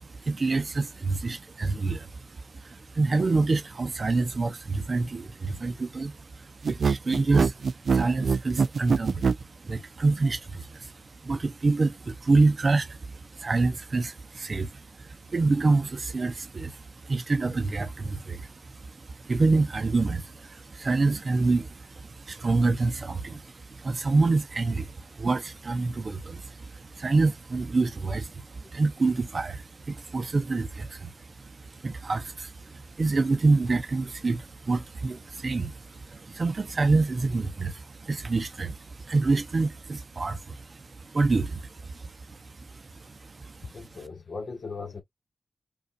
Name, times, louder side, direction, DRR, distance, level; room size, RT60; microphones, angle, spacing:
voice 1, 0.0-44.1, right 3 dB, 45° right, 0.7 m, -27 dB
sound 1, 6.6-9.4, right 5 dB, 75° right, 0.3 m, -23 dB
voice 2, 43.7-45.0, left 4 dB, 55° left, 1.4 m, -38 dB
5.2 x 2.5 x 2.4 m
wide cardioid pair, 115°, 0 cm